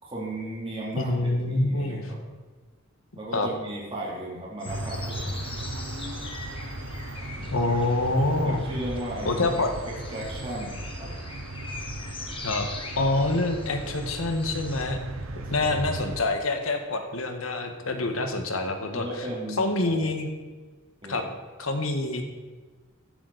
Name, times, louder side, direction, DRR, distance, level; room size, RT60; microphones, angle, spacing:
voice 1, 0.0-2.2 3.1-5.3 7.4-7.7 8.4-9.6 10.1-11.1 15.3-15.7 18.9-20.0 21.0-21.2, right 1 dB, 25° right, -4 dB, 3.5 m, -36 dB
voice 2, 1.0-2.1 3.3-3.5 7.5-8.6 9.3-9.7 12.4-12.7 13.0-15.0 15.5-19.3 19.6-20.3 21.1-21.3 21.6-22.2, left 2 dB, 85° left, 5 dB, 1.8 m, -26 dB
sound 1, 4.6-14.8, left 3 dB, 25° left, 1.6 m, -43 dB
sound 2, 4.6-16.2, right 1 dB, 85° right, 1.3 m, -36 dB
15.0 x 11.5 x 4.3 m, 1.4 s
head